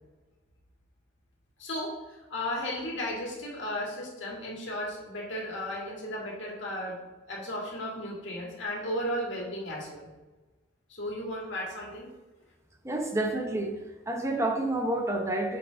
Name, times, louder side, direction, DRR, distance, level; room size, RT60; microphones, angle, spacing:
voice 1, 1.6-10.1 10.9-12.1, left 1 dB, 65° left, -3 dB, 2.1 m, -35 dB
voice 2, 12.8-15.6, right 1 dB, 15° right, 3 dB, 0.9 m, -29 dB
6.7 x 5.1 x 5.1 m, 1.2 s
head